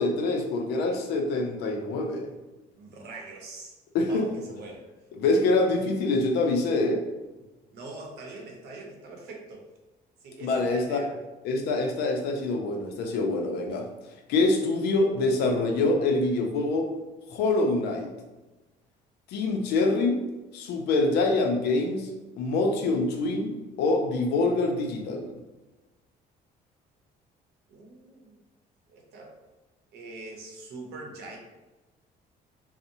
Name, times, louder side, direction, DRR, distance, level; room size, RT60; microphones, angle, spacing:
voice 1, 0.0-2.3 3.9-4.2 5.2-7.0 10.4-11.0 11.4-13.9 14.3-16.9 17.3-18.1 19.3-20.2 20.5-22.1 22.4-25.3, left 2 dB, 80° left, 3 dB, 0.5 m, -25 dB
voice 2, 2.8-3.8 4.1-4.9 7.7-9.7 10.2-11.2 27.7-28.4 28.9-29.4 29.9-31.4, right 2 dB, 75° right, 0 dB, 0.7 m, -43 dB
2.7 x 2.0 x 2.6 m, 1.1 s
cardioid pair, 110°, 17 cm